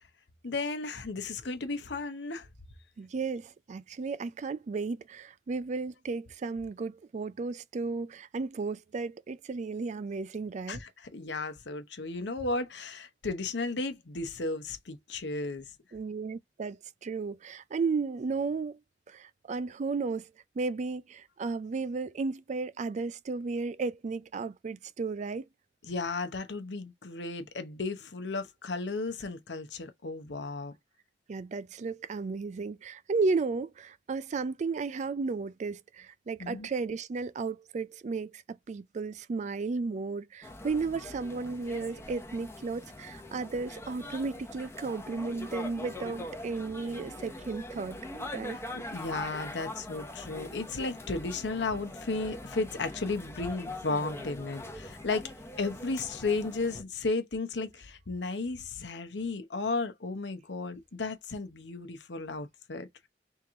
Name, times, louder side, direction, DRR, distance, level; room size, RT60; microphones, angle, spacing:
voice 1, 0.4-2.5 10.7-15.7 25.8-30.7 36.4-36.7 48.7-55.3 55.6-63.1, left 3 dB, 80° left, 0.8 m, -34 dB
voice 2, 3.0-10.8 15.9-18.8 19.1-20.3 20.6-25.5 31.3-48.0 48.3-48.6, right 4 dB, 45° right, 0.4 m, -34 dB
sound 1, 40.4-56.8, left 1 dB, 15° left, 0.8 m, -43 dB
3.6 x 3.0 x 3.7 m
head